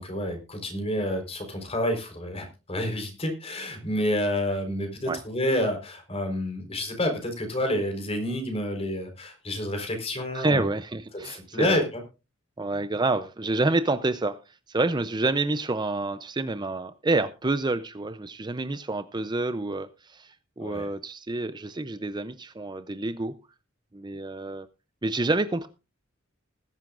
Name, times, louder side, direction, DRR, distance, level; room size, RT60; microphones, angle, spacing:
voice 1, 0.0-10.7 11.2-12.0 20.6-20.9, left 1 dB, 30° left, 5 dB, 4.3 m, -29 dB
voice 2, 10.3-11.8 12.6-23.3 23.9-24.7 25.0-25.7, right 2 dB, 20° right, 12 dB, 0.5 m, -28 dB
20.5 x 11.0 x 2.5 m, 0.29 s
head